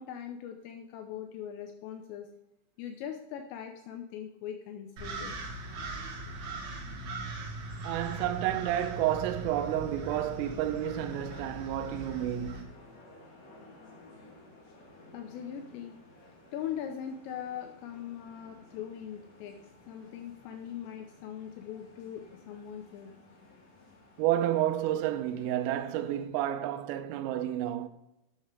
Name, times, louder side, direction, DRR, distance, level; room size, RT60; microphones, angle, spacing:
voice 1, 0.0-2.3 2.8-5.3 15.1-16.0 16.5-19.6 19.9-23.1, left 9 dB, 85° left, 2.5 m, -41 dB
sound 1, 5.0-12.6, right 2 dB, 65° right, 1.8 m, -40 dB
voice 2, 7.8-12.8 24.2-27.9, right 12 dB, 85° right, 3.2 m, -30 dB
sound 2, 8.1-26.2, left 2 dB, 50° left, 2.2 m, -55 dB
9.8 x 6.6 x 4.8 m
omnidirectional pair, 5.9 m